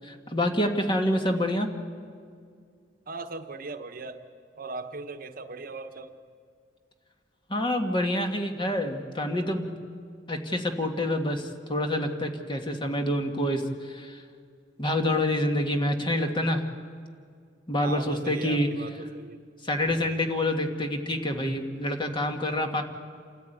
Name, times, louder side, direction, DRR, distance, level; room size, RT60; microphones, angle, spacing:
voice 1, 0.0-1.7 7.5-9.7 10.3-13.6 13.9-14.2 14.8-16.6 17.7-18.7 19.6-22.8, left 1 dB, 25° left, 4 dB, 1.7 m, -27 dB
voice 2, 3.1-4.2 4.6-6.1 17.8-19.4, right 3 dB, 50° right, 8 dB, 1.1 m, -38 dB
28.0 x 14.0 x 9.2 m, 2.2 s
head